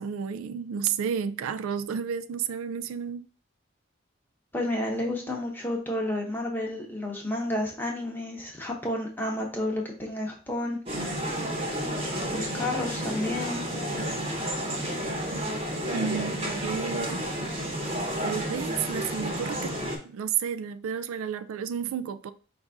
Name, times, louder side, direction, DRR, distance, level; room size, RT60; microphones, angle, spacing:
voice 1, 0.0-3.2 15.9-17.2 18.2-19.8 20.0-22.3, right 7 dB, 80° right, 0.3 m, -31 dB
voice 2, 4.5-10.8 12.3-13.7, left 1 dB, 10° left, 0.8 m, -31 dB
sound 1, 10.9-20.0, equal, 25° right, 0.9 m, -31 dB
5.1 x 2.6 x 3.4 m
head